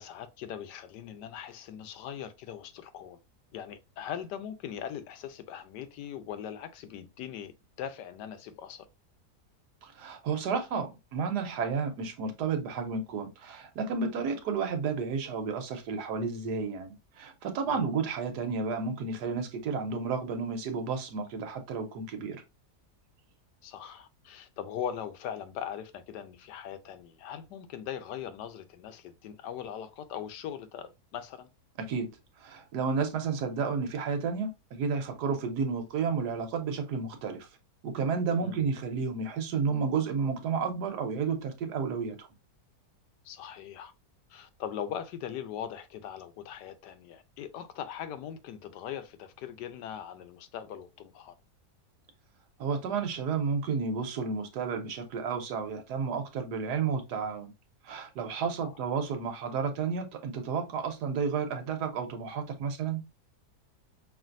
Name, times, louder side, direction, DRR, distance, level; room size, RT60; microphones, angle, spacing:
voice 1, 0.0-3.2 3.5-7.5 7.8-8.9 17.7-18.0 23.6-31.5 38.4-38.6 43.2-43.9 44.3-51.3 58.6-58.7, left 9 dB, 80° left, 1.2 m, -40 dB
voice 2, 9.8-22.4 31.8-32.1 32.4-37.5 37.8-42.3 52.6-57.5 57.8-63.0, right 5 dB, 75° right, 1.4 m, -31 dB
5.6 x 2.6 x 2.5 m
omnidirectional pair, 1.8 m